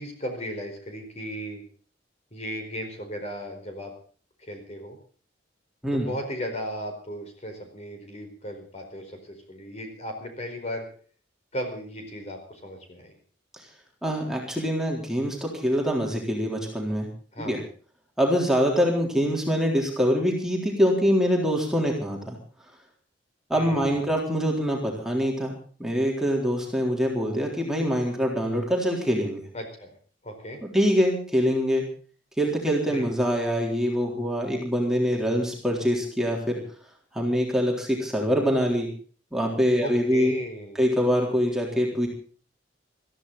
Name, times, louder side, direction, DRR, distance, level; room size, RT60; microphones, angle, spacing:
voice 1, 0.0-1.6 2.3-3.9 4.4-5.0 5.9-10.9 11.5-13.2 17.3-17.6 23.5-24.1 29.5-29.9 30.2-30.6 32.9-33.1 39.8-40.8, equal, 35° left, 5 dB, 4.6 m, -36 dB
voice 2, 14.0-17.1 17.4-17.6 18.2-22.4 23.5-29.4 30.6-31.8 32.4-36.6 37.1-38.9 39.3-40.3 40.8-42.1, equal, 5° right, -1 dB, 3.8 m, -24 dB
21.0 x 14.5 x 4.1 m, 0.42 s
head